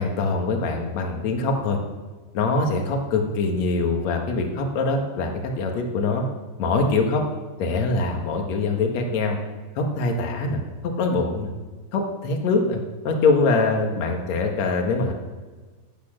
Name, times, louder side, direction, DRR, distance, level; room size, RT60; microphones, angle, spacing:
voice 1, 0.0-1.8 2.3-6.3 6.6-7.2 7.6-9.4 9.8-11.5 11.9-15.1, left 3 dB, 50° left, 3 dB, 2.4 m, -23 dB
18.0 x 8.4 x 6.5 m, 1.4 s
omnidirectional pair, 4.9 m